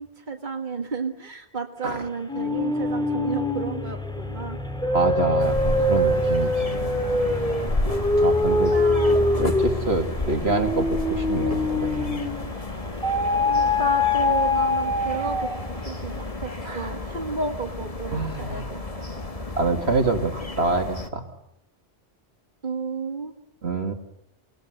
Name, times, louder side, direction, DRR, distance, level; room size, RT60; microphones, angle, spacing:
voice 1, 0.0-4.6 8.7-9.3 13.4-15.5 15.9-18.8 19.1-19.2 22.6-23.3, right 4 dB, 45° right, 3 dB, 1.9 m, -32 dB
sound 1, 2.3-12.5 13.0-15.8, left 2 dB, 5° left, 2.6 m, -24 dB
voice 2, 4.9-6.9 8.2-8.7 9.4-12.3 16.6-16.9 18.1-18.7 19.6-21.3 23.6-23.9, right 3 dB, 75° right, 4 dB, 2.5 m, -26 dB
sound 2, 5.4-21.1, left 2 dB, 35° left, 1.7 m, -32 dB
28.5 x 19.0 x 7.9 m, 0.78 s
omnidirectional pair, 1.1 m